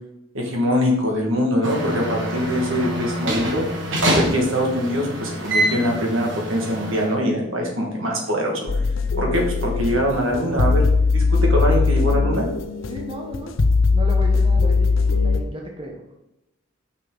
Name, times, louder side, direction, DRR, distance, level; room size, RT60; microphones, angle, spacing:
voice 1, 0.3-8.7 9.2-10.8 11.1-12.5, equal, 80° right, 0 dB, 1.8 m, -23 dB
sound 1, 1.6-7.1, equal, 65° right, 1.7 m, -25 dB
sound 2, 8.7-15.4, left 4 dB, 75° left, 0.6 m, -20 dB
voice 2, 12.9-13.5 13.9-14.9 15.2-16.2, equal, 25° right, 1 dB, 0.9 m, -34 dB
6.3 x 5.9 x 3.9 m, 0.87 s
head